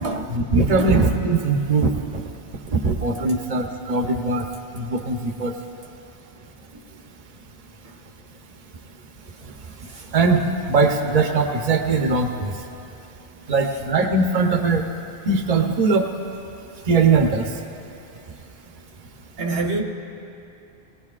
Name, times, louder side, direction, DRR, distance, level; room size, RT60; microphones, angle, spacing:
voice 1, 0.3-2.2 2.7-4.5 4.7-5.5 10.1-12.5 13.5-14.8 15.3-16.1 16.9-17.5, right 3 dB, 40° right, 3 dB, 0.9 m, -20 dB
voice 2, 19.4-19.8, right 3 dB, 85° right, 0 dB, 1.5 m, -26 dB
19.5 x 19.0 x 2.4 m, 3.0 s
omnidirectional pair, 1.1 m